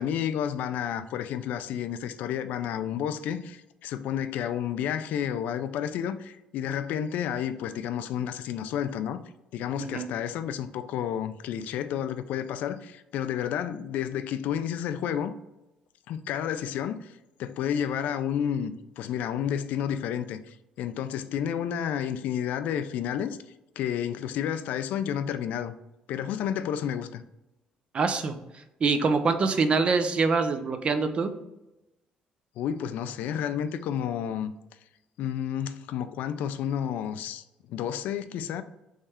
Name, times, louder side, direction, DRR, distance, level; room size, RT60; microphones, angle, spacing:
voice 1, 0.0-9.2 9.5-15.3 16.1-23.4 23.8-25.7 26.1-27.2 32.6-34.5 35.2-38.6, left 9 dB, 80° left, 0.3 m, -31 dB
voice 2, 27.9-28.3 28.8-31.3, right 4 dB, 40° right, 0.5 m, -24 dB
3.6 x 3.2 x 4.3 m
cardioid pair, 100°, 3 cm